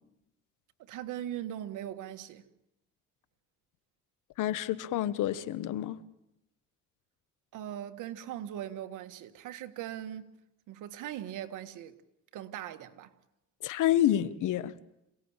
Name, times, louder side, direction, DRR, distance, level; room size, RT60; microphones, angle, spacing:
voice 1, 0.8-2.4 7.5-10.4 10.7-11.9 12.3-13.1, right 11 dB, 90° right, 1.8 m, -40 dB
voice 2, 4.4-6.0 13.6-14.7, left 12 dB, 85° left, 1.3 m, -28 dB
27.5 x 18.0 x 8.9 m
cardioid pair, 90°, 30 cm